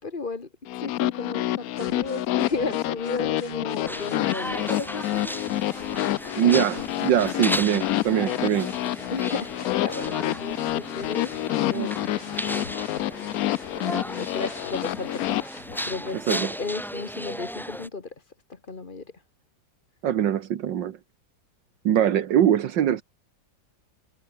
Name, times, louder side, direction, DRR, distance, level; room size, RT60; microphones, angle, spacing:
voice 1, 0.0-5.8 9.1-11.9 12.9-13.1 13.9-18.2 18.5-19.1, left 4 dB, 30° left, 1.8 m, -34 dB
sound 1, 0.7-15.4, left 15 dB, 70° left, 0.9 m, -28 dB
sound 2, 1.8-16.1, left 3 dB, 45° left, 3.8 m, -45 dB
sound 3, 3.9-17.9, equal, ahead, 4.6 m, -36 dB
voice 2, 6.4-8.7 11.7-11.9 16.3-16.5 20.0-21.0 21.9-23.0, right 10 dB, 80° right, 1.8 m, -22 dB
omnidirectional pair, 2.0 m